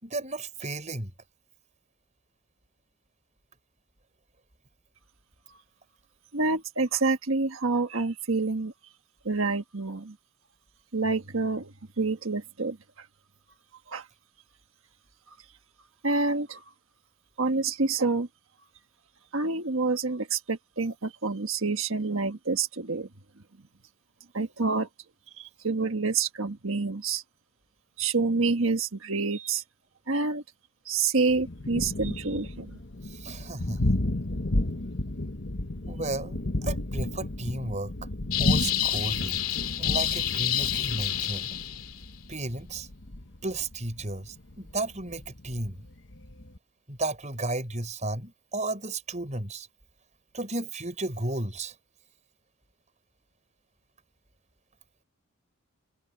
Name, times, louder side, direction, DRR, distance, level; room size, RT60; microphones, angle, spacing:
voice 1, 0.0-1.1 33.1-33.9 35.9-38.1 38.4-39.4 39.8-41.5 42.3-42.9 43.4-45.8 46.9-49.7 50.3-51.7, right 2 dB, 30° right, 6.2 m, -34 dB
voice 2, 6.3-8.7 9.2-10.1 10.9-11.7 12.0-12.8 13.9-14.0 16.0-16.6 17.4-18.3 19.3-23.1 24.3-24.9 25.4-27.2 28.0-29.6 30.1-30.4 30.9-32.8, right 3 dB, 65° right, 1.5 m, -27 dB
Thunder, 31.3-46.6, left 1 dB, 55° left, 1.4 m, -33 dB
sound 1, 38.3-42.0, left 12 dB, 75° left, 2.6 m, -28 dB
head